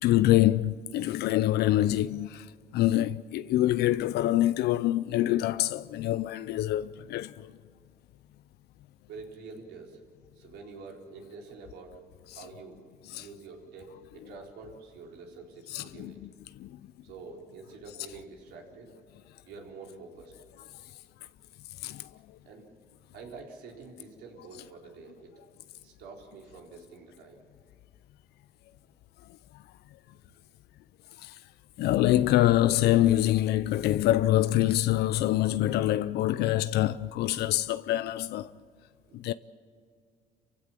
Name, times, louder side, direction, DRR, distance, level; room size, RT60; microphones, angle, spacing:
voice 1, 0.0-2.5 2.7-7.5 12.3-12.4 13.1-13.3 15.7-16.1 16.6-16.7 21.8-22.1 31.2-31.3 31.8-38.5 39.1-39.3, left 14 dB, 75° left, 0.5 m, -25 dB
voice 2, 9.1-10.0 10.3-11.9 12.3-12.8 13.1-16.2 17.0-18.9 19.5-20.3 22.4-22.6 23.1-25.3 25.8-27.4 30.3-30.4 39.1-39.2, right 4 dB, 80° right, 4.2 m, -47 dB
27.5 x 16.0 x 7.5 m
cardioid pair, 110°, 17 cm